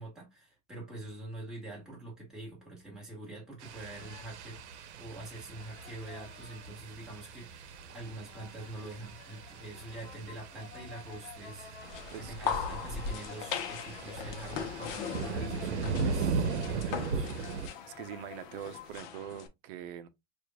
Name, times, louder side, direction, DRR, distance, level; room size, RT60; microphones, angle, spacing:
voice 1, 0.0-17.3, right 2 dB, ahead, 1.6 m, -45 dB
sound 1, 3.6-19.0, left 8 dB, 75° left, 1.0 m, -53 dB
sound 2, 3.6-17.7, right 5 dB, 85° right, 0.8 m, -38 dB
sound 3, 11.8-19.5, left 6 dB, 45° left, 0.9 m, -39 dB
voice 2, 12.1-12.8 18.0-20.1, right 10 dB, 55° right, 0.7 m, -43 dB
6.4 x 2.5 x 2.3 m
supercardioid pair, 155°, 33 cm